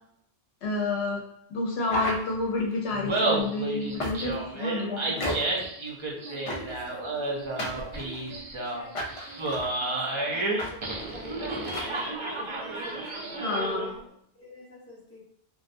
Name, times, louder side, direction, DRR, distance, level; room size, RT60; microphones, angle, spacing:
voice 1, 0.6-1.2 1.5-5.0 5.3-5.4 13.4-14.0, left 3 dB, 85° left, -1 dB, 0.9 m, -29 dB
sound 1, 1.8-2.7 4.0-4.5 5.2-5.7 6.5-6.9 7.6-8.4 8.9-9.7 10.6-10.7 11.0-11.1 11.6-11.9, left 1 dB, 50° left, 0.4 m, -33 dB
Laughter, 2.9-14.0, right 2 dB, 50° right, 0.3 m, -31 dB
voice 2, 4.6-5.3 5.8-15.2, equal, 15° left, -6 dB, 0.8 m, -47 dB
2.3 x 2.1 x 2.5 m, 0.70 s
omnidirectional pair, 1.1 m